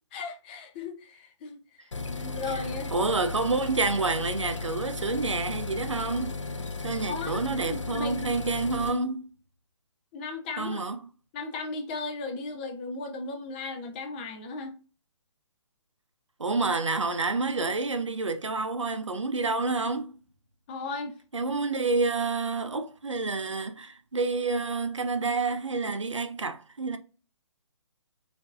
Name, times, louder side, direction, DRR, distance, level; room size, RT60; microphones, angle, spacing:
voice 1, 0.1-1.6 2.0-2.9 7.0-8.4 10.1-10.8 11.3-14.7 20.7-21.2, left 3 dB, 20° left, 0.5 m, -36 dB
sound 1, 1.9-8.9, left 3 dB, 80° left, 0.5 m, -35 dB
voice 2, 2.9-6.4 6.8-9.3 10.6-11.0 16.4-20.1 21.3-27.0, right 3 dB, 80° right, 0.5 m, -28 dB
4.3 x 2.6 x 2.4 m
figure-of-eight pair, 135°, 15 cm